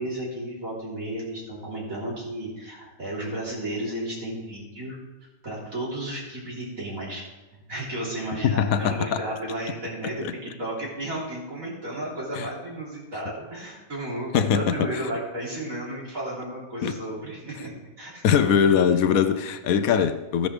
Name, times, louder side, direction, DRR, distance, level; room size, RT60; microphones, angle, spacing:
voice 1, 0.0-5.0 5.4-7.2 7.5-17.7 18.0-18.2, right 1 dB, 60° right, -5 dB, 3.8 m, -33 dB
voice 2, 8.4-9.2 10.2-10.3 12.4-12.5 14.3-14.9 16.8-17.0 18.2-20.5, left 7 dB, 70° left, 11 dB, 1.0 m, -21 dB
14.0 x 10.5 x 3.3 m, 1.1 s
omnidirectional pair, 1.6 m